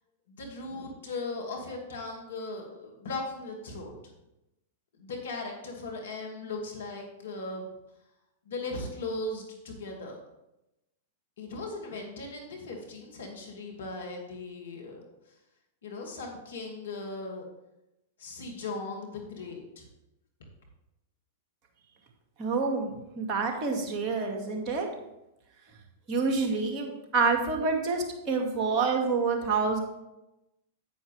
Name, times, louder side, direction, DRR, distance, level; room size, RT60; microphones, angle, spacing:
voice 1, 0.3-3.9 5.0-7.7 8.5-10.2 11.4-15.0 15.8-17.4 18.2-19.8, left 2 dB, 75° left, 1 dB, 2.6 m, -38 dB
voice 2, 22.4-24.9 26.1-29.8, right 4 dB, 35° right, 2 dB, 2.3 m, -27 dB
9.4 x 9.2 x 3.5 m, 0.90 s
hypercardioid pair, 100°, 0 cm